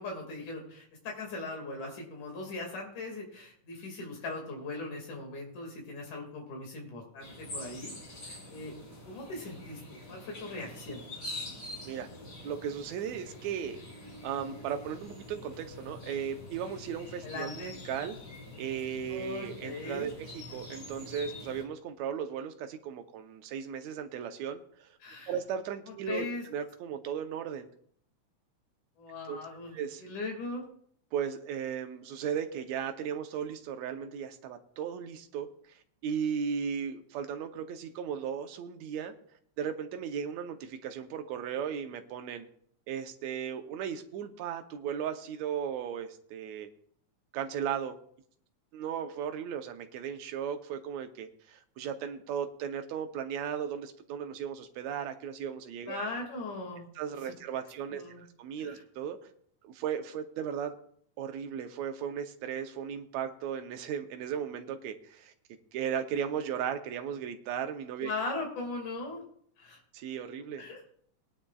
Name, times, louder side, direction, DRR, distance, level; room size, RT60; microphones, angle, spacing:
voice 1, 0.0-8.0 8.2-8.7 9.1-9.8 10.1-11.0 17.2-17.7 19.1-20.1 25.0-25.3 25.9-26.5 29.0-30.6 55.8-56.8 57.9-58.2 58.6-58.8 68.0-69.2 69.6-69.8 70.6-70.8, left 2 dB, 90° left, 0 dB, 3.7 m, -39 dB
sound 1, 7.2-21.6, left 2 dB, 35° left, 2.7 m, -45 dB
voice 2, 12.4-13.8 14.2-17.5 17.9-18.2 18.6-24.9 25.3-26.3 26.5-27.7 29.3-29.4 29.7-30.0 31.1-39.1 39.6-42.5 42.9-46.7 47.3-48.0 48.7-56.0 57.0-59.2 59.6-60.8 61.2-65.3 65.7-68.1 69.9-70.6, right 8 dB, 75° right, 7 dB, 2.0 m, -36 dB
19.5 x 9.9 x 2.4 m, 0.63 s
omnidirectional pair, 3.4 m